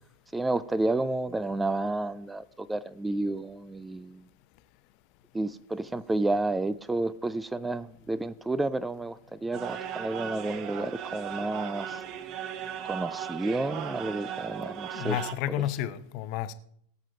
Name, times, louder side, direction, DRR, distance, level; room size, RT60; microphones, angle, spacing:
voice 1, 0.3-4.2 5.3-12.0 12.8-15.2, right 2 dB, 10° right, 0.5 m, -31 dB
sound 1, 9.5-15.3, right 9 dB, 35° right, 1.2 m, -37 dB
voice 2, 14.9-16.5, left 12 dB, 45° left, 0.9 m, -31 dB
18.0 x 7.5 x 5.2 m
figure-of-eight pair, 90°, 0 cm